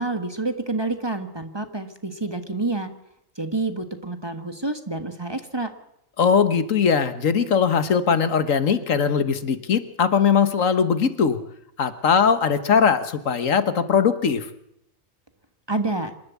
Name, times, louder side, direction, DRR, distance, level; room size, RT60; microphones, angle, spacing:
voice 1, 0.0-2.9 3.4-5.7 15.7-16.1, right 2 dB, 20° right, 7 dB, 1.5 m, -28 dB
voice 2, 6.2-11.4 11.8-14.5, left 6 dB, 75° left, 11 dB, 1.6 m, -20 dB
26.0 x 12.0 x 8.3 m, 0.78 s
omnidirectional pair, 1.4 m